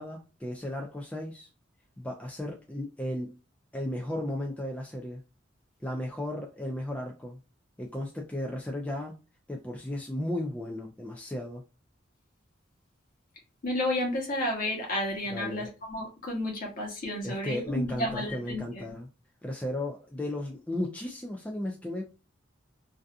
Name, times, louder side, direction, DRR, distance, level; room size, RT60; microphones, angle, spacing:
voice 1, 0.0-1.5 2.0-3.4 3.7-5.2 5.8-7.4 7.8-9.2 9.5-11.6 15.3-15.7 17.2-19.1 19.4-22.0, left 1 dB, 5° left, 0 dB, 0.3 m, -35 dB
voice 2, 13.6-18.8, left 1 dB, 45° left, 0 dB, 0.9 m, -31 dB
2.6 x 2.3 x 2.3 m, 0.30 s
head